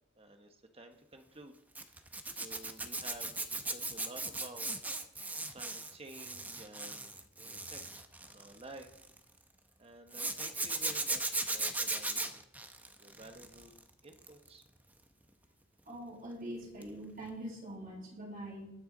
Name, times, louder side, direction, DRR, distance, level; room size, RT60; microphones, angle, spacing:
voice 1, 0.2-1.5 2.3-4.7 5.5-8.9 9.8-12.4 13.0-13.7 14.0-14.6, right 2 dB, 30° right, 5 dB, 1.3 m, -52 dB
Zipper (clothing), 1.7-9.2 10.1-13.8 14.1-14.5 16.8-17.0 17.2-17.3, right 2 dB, 10° right, 0.8 m, -37 dB
voice 2, 15.9-18.7, right 1 dB, 50° right, -3 dB, 4.9 m, -43 dB
20.0 x 6.8 x 4.0 m, 0.81 s
head